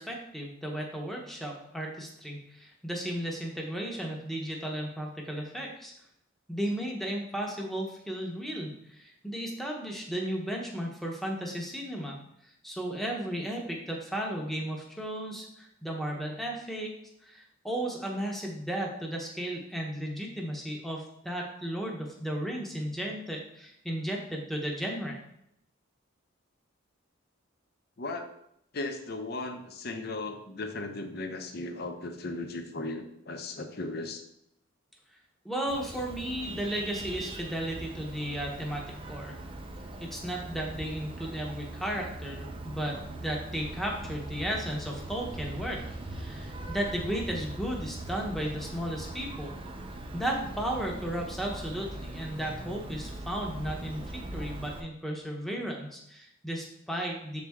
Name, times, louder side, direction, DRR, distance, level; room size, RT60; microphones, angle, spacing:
voice 1, 0.0-5.9 6.5-12.2 12.6-16.9 17.2-25.2 35.4-39.4 40.0-45.8 46.1-49.5 50.1-57.4, right 1 dB, ahead, -1 dB, 0.9 m, -34 dB
voice 2, 28.0-28.3 28.7-34.2, left 2 dB, 50° left, 5 dB, 0.7 m, -36 dB
Vehicle horn car horn honking, 35.7-54.8, right 2 dB, 25° right, 0.5 m, -41 dB
7.2 x 4.2 x 3.6 m, 0.76 s
head